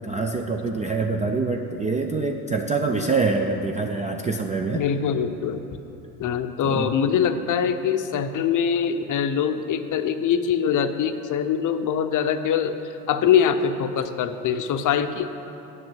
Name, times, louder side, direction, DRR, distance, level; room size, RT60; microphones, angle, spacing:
voice 1, 0.0-4.8 6.6-6.9, right 3 dB, 15° right, 3 dB, 0.3 m, -25 dB
voice 2, 4.7-5.7 6.2-12.7 13.1-15.3, left 8 dB, 40° left, 9 dB, 0.6 m, -23 dB
7.7 x 6.2 x 7.4 m, 2.9 s
hypercardioid pair, 75°, 49 cm